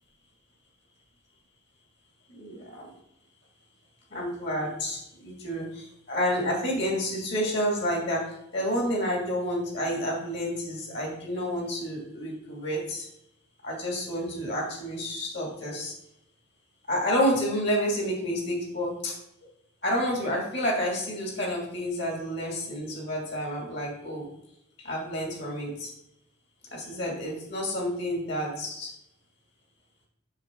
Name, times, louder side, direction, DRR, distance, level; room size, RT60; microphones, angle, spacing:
voice 1, 2.3-2.9 4.1-13.1 13.6-15.9 16.9-19.2 19.8-24.3 24.8-25.9 26.7-28.9, equal, 55° left, -2 dB, 2.5 m, -29 dB
7.4 x 6.6 x 3.8 m, 0.79 s
head